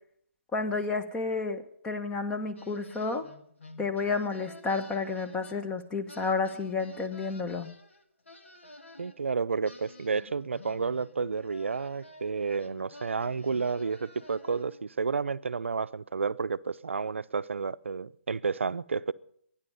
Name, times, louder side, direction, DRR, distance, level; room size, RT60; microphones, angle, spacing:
voice 1, 0.5-3.3 3.8-7.7, left 4 dB, 10° left, 7 dB, 1.1 m, -31 dB
sound 1, 2.6-5.8 6.1-9.2 9.6-14.9, left 2 dB, 85° left, 2.0 m, -50 dB
voice 2, 9.0-19.1, right 5 dB, 75° right, 14 dB, 0.6 m, -31 dB
24.5 x 10.0 x 5.4 m, 0.69 s
figure-of-eight pair, 145°, 7 cm